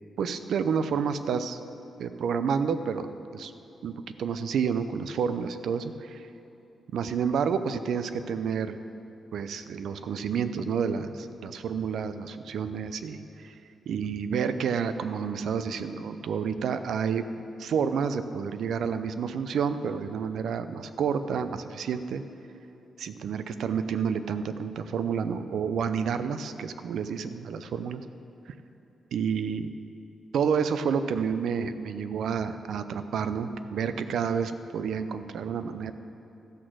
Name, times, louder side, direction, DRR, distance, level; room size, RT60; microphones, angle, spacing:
voice 1, 0.2-1.6 2.0-3.5 3.8-6.3 6.9-8.8 9.3-13.5 13.9-22.2 23.0-28.0 29.1-29.7 30.3-35.9, right 6 dB, 75° right, 11 dB, 0.5 m, -29 dB
14.0 x 6.3 x 6.3 m, 3.0 s
cardioid pair, 110°, 0 cm